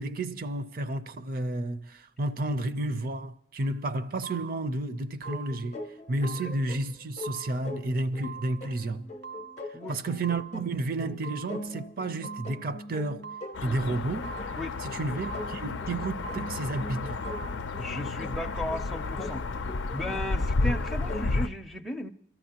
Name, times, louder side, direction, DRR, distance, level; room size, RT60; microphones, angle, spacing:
voice 1, 0.0-5.8 6.1-9.1 9.9-13.3 13.6-14.3 14.8-17.2, right 2 dB, 50° right, 0.5 m, -31 dB
sound 1, 3.6-3.8 4.2-4.8 5.2-5.8 6.2-6.8 7.2-7.8 8.2-8.8 9.2-9.8 10.2-10.8 11.2-11.8 12.2-12.8 13.2-13.8 14.2-14.8 15.2-15.8 16.2-16.8 17.2-17.5, right 7 dB, 80° right, 1.2 m, -44 dB
sound 2, 5.2-21.3, left 1 dB, 40° left, 0.7 m, -42 dB
sound 3, 13.5-21.5, left 3 dB, 85° left, 0.5 m, -32 dB
voice 2, 17.8-19.4 19.9-22.1, left 1 dB, ahead, 0.5 m, -35 dB
27.5 x 13.0 x 2.9 m
head